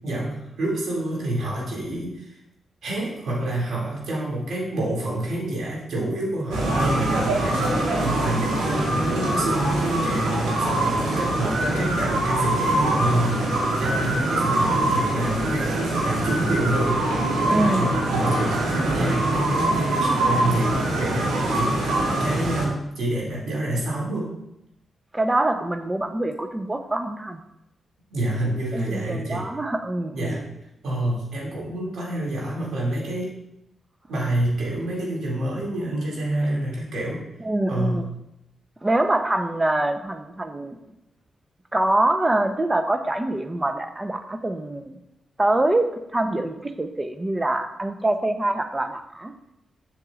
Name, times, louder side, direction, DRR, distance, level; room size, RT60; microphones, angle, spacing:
voice 1, 0.0-2.3 2.8-24.3 28.1-29.4 30.1-30.5 30.8-33.3 34.1-37.2 37.7-38.1, right 1 dB, 75° right, -4 dB, 2.5 m, -28 dB
sound 1, 6.5-22.6, right 1 dB, 90° right, 1.4 m, -23 dB
voice 2, 17.5-17.9 25.1-27.4 28.7-30.4 37.4-38.1 38.8-40.8 41.7-45.0 45.4-49.3, right 1 dB, 25° right, 8 dB, 0.8 m, -24 dB
7.6 x 6.4 x 2.5 m, 0.86 s
supercardioid pair, 45°, 0 cm